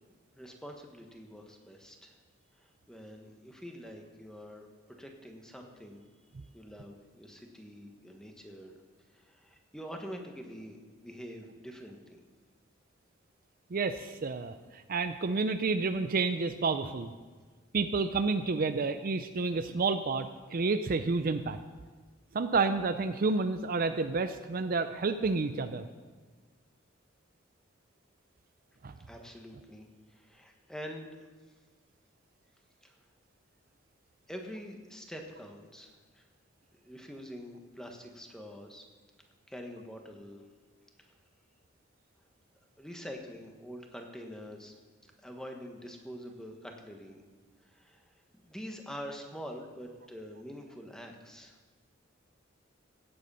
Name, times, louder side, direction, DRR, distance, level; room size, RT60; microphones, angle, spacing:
voice 1, 0.3-2.2 2.5-6.0 6.5-8.8 9.1-12.2 29.1-31.2 32.8-33.0 34.3-36.3 36.7-38.9 39.5-40.5 41.0-41.1 42.8-44.8 45.2-47.2 47.6-48.0 48.4-51.6, equal, 5° left, 2 dB, 1.3 m, -46 dB
voice 2, 13.7-17.1 17.7-21.6 22.3-25.9 28.8-28.9, right 4 dB, 45° right, 9 dB, 0.5 m, -30 dB
16.5 x 7.9 x 5.6 m, 1.4 s
head